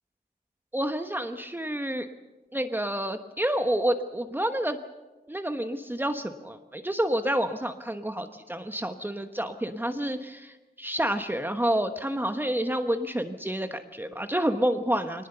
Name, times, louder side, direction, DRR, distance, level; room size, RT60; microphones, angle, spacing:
voice 1, 0.7-2.1 2.5-4.8 5.3-15.3, right 1 dB, 10° right, 7 dB, 1.0 m, -29 dB
23.0 x 19.5 x 6.8 m, 1.1 s
wide cardioid pair, 120°, 17 cm